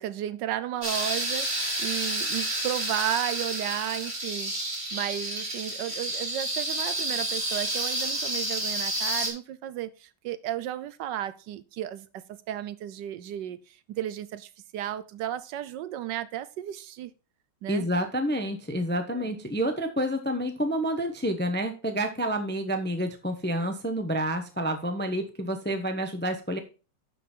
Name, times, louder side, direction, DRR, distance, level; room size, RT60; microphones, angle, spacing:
voice 1, 0.0-4.5 4.9-17.1 17.6-17.9 19.1-19.3, right 12 dB, 75° right, 1.2 m, -34 dB
sound 1, 0.8-9.3, right 1 dB, 35° right, 2.8 m, -30 dB
voice 2, 17.7-26.6, equal, 10° left, 0.5 m, -29 dB
11.5 x 5.1 x 4.4 m
omnidirectional pair, 2.0 m